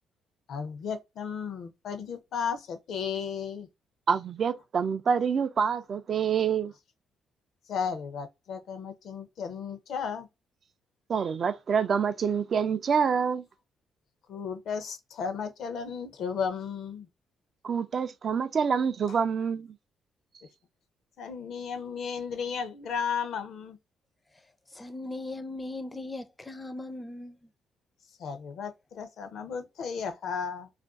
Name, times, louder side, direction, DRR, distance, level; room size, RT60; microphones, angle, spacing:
voice 1, 0.5-3.7 7.7-10.3 14.3-17.1 19.1-19.2 21.2-23.8 28.2-30.7, left 6 dB, 70° left, 0.5 m, -34 dB
voice 2, 4.1-6.7 11.1-13.4 17.6-19.7, right 6 dB, 50° right, 0.3 m, -26 dB
voice 3, 24.7-27.5, left 2 dB, 20° left, 0.4 m, -38 dB
2.4 x 2.2 x 2.3 m
cardioid pair, 90°, 0 cm